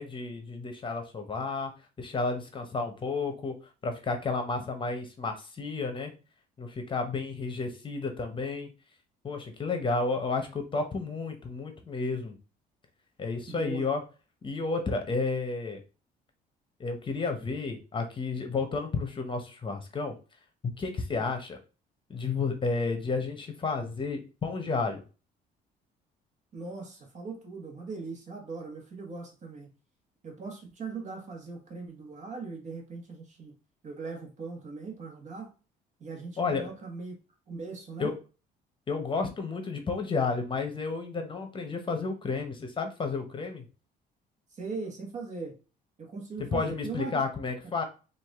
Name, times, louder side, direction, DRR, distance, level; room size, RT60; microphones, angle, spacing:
voice 1, 0.0-1.7 2.0-3.6 3.8-6.1 6.6-8.7 9.2-12.4 13.2-14.0 14.4-15.8 16.8-20.1 20.8-21.6 22.1-25.0 36.4-36.7 38.0-38.1 38.9-43.6 46.5-47.8, left 4 dB, 30° left, 6 dB, 0.9 m, -31 dB
voice 2, 13.5-13.9 21.2-21.3 26.5-29.7 30.2-33.5 33.8-35.5 36.0-37.2 37.5-38.1 44.5-45.6 46.0-47.2, right 4 dB, 45° right, 3 dB, 1.5 m, -40 dB
4.7 x 2.6 x 3.6 m, 0.33 s
cardioid pair, 110°, 17 cm